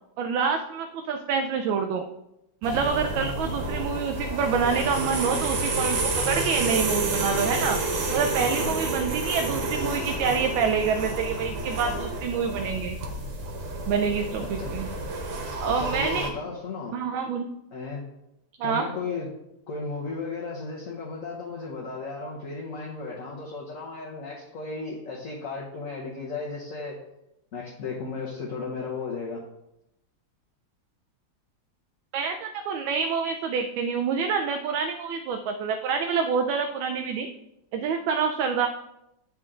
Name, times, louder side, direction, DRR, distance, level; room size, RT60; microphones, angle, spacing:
voice 1, 0.2-2.0 2.6-6.0 6.3-7.8 8.1-13.0 13.9-14.9 15.6-16.3 16.9-17.5 18.6-18.9 32.1-37.3 37.7-38.7, right 6 dB, 75° right, 5 dB, 1.3 m, -27 dB
sound 1, 2.6-16.3, right 2 dB, 50° right, 1.0 m, -29 dB
voice 2, 8.4-9.0 14.6-14.7 15.6-16.9 17.7-18.0 18.6-19.3 19.7-27.0 27.5-29.4, left 4 dB, 45° left, -3 dB, 1.3 m, -35 dB
9.3 x 4.5 x 3.7 m, 0.85 s
omnidirectional pair, 2.3 m